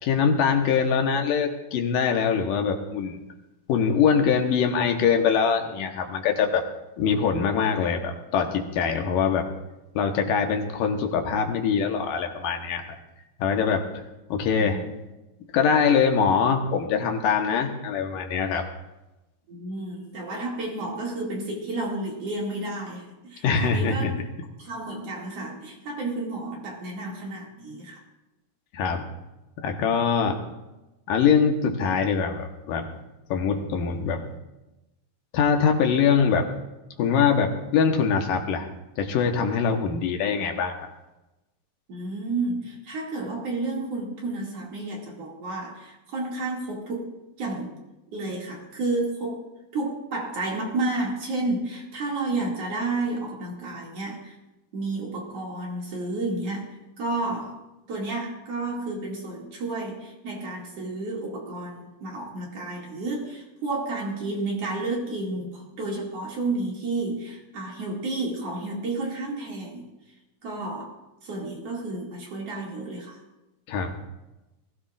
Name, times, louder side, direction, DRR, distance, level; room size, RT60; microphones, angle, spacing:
voice 1, 0.0-3.2 3.7-6.6 7.0-9.5 9.9-12.9 13.4-13.9 14.3-14.8 15.5-18.7 23.4-24.1 28.7-29.1 29.6-30.4 31.1-32.9 33.3-34.2 35.3-36.4 37.0-38.7 39.0-40.9 73.7-74.0, left 6 dB, 85° left, 4 dB, 2.8 m, -23 dB
voice 2, 14.6-14.9 19.5-24.2 24.6-28.0 41.9-47.8 48.1-49.5 49.7-54.4 54.7-57.6 57.9-69.8 70.4-70.9 71.2-73.2, right 2 dB, 50° right, -2 dB, 3.2 m, -31 dB
20.5 x 16.0 x 2.5 m, 1.0 s
omnidirectional pair, 3.8 m